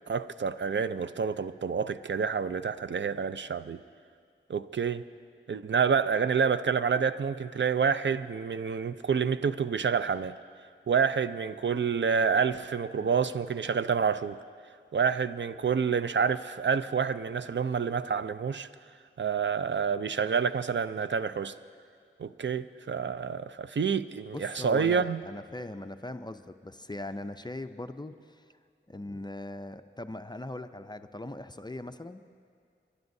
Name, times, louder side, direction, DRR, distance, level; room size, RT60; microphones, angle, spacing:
voice 1, 0.1-3.8 4.5-5.0 5.5-10.3 10.9-14.4 14.9-18.7 19.2-21.6 22.2-25.2, right 6 dB, 60° right, 13 dB, 0.4 m, -28 dB
voice 2, 24.3-28.4 28.9-32.2, left 2 dB, 20° left, 9 dB, 0.4 m, -40 dB
30.0 x 11.5 x 2.7 m, 2.3 s
wide cardioid pair, 65°, 21 cm